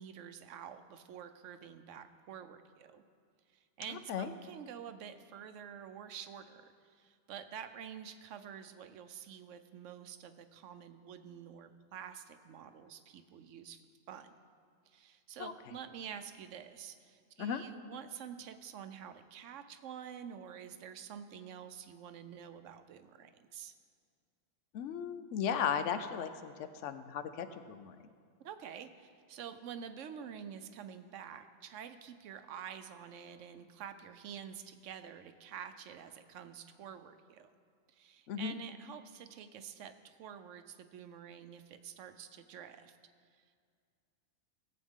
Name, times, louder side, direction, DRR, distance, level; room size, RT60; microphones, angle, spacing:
voice 1, 0.0-3.0 3.5-13.8 14.1-14.4 14.9-23.7 28.4-37.5 37.9-43.0 43.4-43.6, right 8 dB, 85° right, 10 dB, 1.0 m, -48 dB
voice 2, 3.9-4.3 15.4-15.5 17.4-17.6 24.7-28.1 38.3-38.5, left 8 dB, 80° left, 11 dB, 1.0 m, -36 dB
17.0 x 7.8 x 3.6 m, 2.2 s
omnidirectional pair, 1.2 m